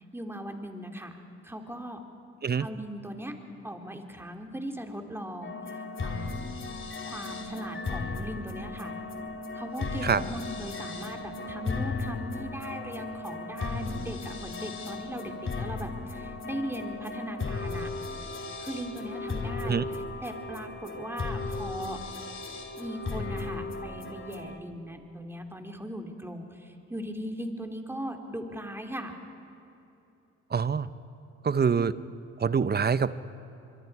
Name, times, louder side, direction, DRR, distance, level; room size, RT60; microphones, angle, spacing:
voice 1, 0.1-1.1 1.4-2.0 2.6-3.3 3.6-5.5 6.0-6.5 7.0-8.9 9.5-17.9 18.6-22.0 22.8-29.2, equal, 5° right, 4 dB, 2.8 m, -39 dB
sound 1, 5.4-24.6, left 3 dB, 40° left, 2.6 m, -36 dB
voice 2, 30.5-30.9 31.4-31.9 32.4-33.1, right 6 dB, 30° right, 16 dB, 0.8 m, -25 dB
24.5 x 22.5 x 4.7 m, 2.9 s
supercardioid pair, 55°, 32 cm